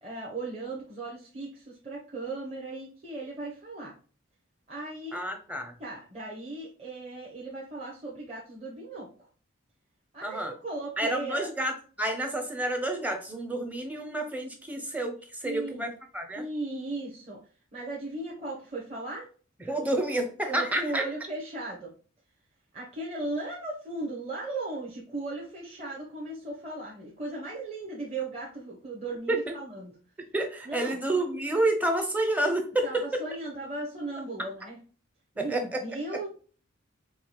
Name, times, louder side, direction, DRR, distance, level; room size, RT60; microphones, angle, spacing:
voice 1, 0.0-3.9 4.7-5.2 5.8-9.1 10.1-11.5 15.4-15.9 16.3-17.4 17.7-19.3 19.8-19.9 20.5-21.9 22.7-29.9 30.6-31.0 32.8-34.8 35.3-36.3, right 2 dB, 30° right, -4 dB, 0.9 m, -37 dB
voice 2, 5.1-5.7 10.2-10.5 11.0-16.4 19.7-21.0 29.3-29.6 30.3-32.9 35.4-35.6, right 1 dB, 5° right, 4 dB, 0.6 m, -29 dB
4.7 x 3.1 x 2.2 m, 0.40 s
head